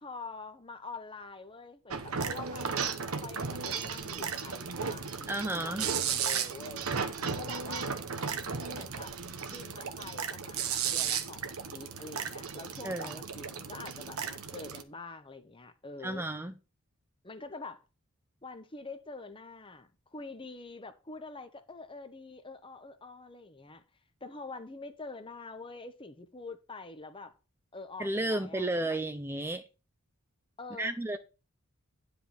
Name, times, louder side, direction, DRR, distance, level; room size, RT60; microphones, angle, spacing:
voice 1, 0.0-7.9 8.6-9.2 9.5-16.3 17.2-17.8 18.4-23.8 24.2-27.3 27.7-28.9 30.6-31.2, left 3 dB, 25° left, 1.0 m, -46 dB
sound 1, 1.9-14.8, right 6 dB, 85° right, 1.2 m, -35 dB
voice 2, 5.3-5.9 12.8-13.2 16.0-16.5 28.0-29.6 30.8-31.2, right 1 dB, 10° right, 0.5 m, -32 dB
10.0 x 5.1 x 5.8 m
head